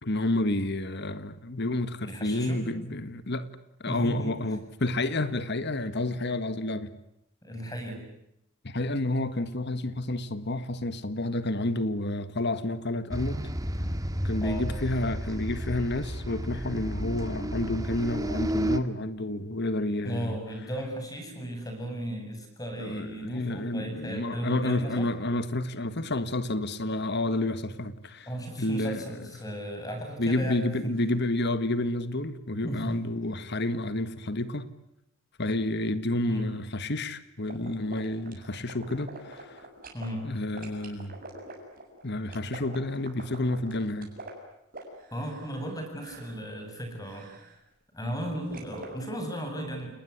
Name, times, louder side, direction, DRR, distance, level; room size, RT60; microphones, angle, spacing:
voice 1, 0.0-3.5 3.8-6.9 8.6-13.4 14.2-20.4 22.8-28.3 28.6-29.0 30.2-34.7 35.4-39.6 40.2-41.2 42.0-44.1, left 1 dB, 55° left, 1.6 m, -30 dB
voice 2, 2.0-2.6 3.9-4.5 7.4-8.1 14.4-14.7 20.0-25.1 25.9-26.0 28.3-30.9 32.6-33.0 36.3-36.5 39.9-40.2 45.1-47.3 47.9-49.9, equal, 15° left, 7.9 m, -35 dB
sound 1, 13.1-18.8, equal, 15° right, 1.7 m, -32 dB
sound 2, 37.5-40.1 40.5-45.7 46.0-46.4 47.0-47.6 48.5-48.9, right 2 dB, 40° right, 7.7 m, -45 dB
30.0 x 20.5 x 9.8 m
head